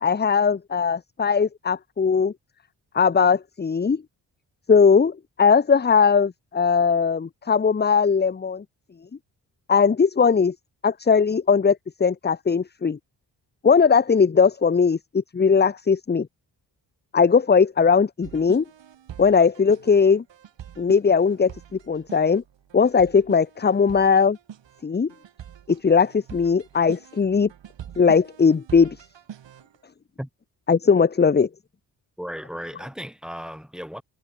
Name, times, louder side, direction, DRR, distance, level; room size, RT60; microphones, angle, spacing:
voice 1, 0.0-2.3 2.9-4.0 4.7-8.6 9.7-10.5 10.8-13.0 13.6-16.3 17.1-18.6 19.2-20.2 20.8-21.5 21.9-22.4 22.7-24.4 24.8-25.1 25.7-27.5 28.0-29.0 30.7-31.5, left 5 dB, 20° left, 0.8 m, -19 dB
sound 1, 18.2-29.8, right 9 dB, 65° right, 6.1 m, -44 dB
voice 2, 32.2-34.0, equal, ahead, 7.8 m, -35 dB
hypercardioid pair, 45°, 46 cm